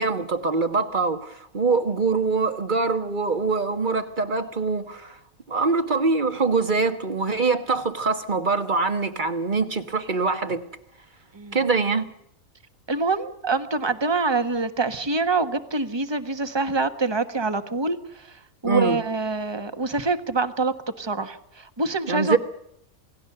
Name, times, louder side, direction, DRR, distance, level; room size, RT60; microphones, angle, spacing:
voice 1, 0.0-5.1 5.5-10.7 11.5-12.0 18.6-19.0 22.1-22.4, right 4 dB, 35° right, 1.4 m, -24 dB
voice 2, 12.9-18.0 18.6-22.4, right 3 dB, 20° right, 1.2 m, -25 dB
28.5 x 18.0 x 6.8 m
omnidirectional pair, 1.5 m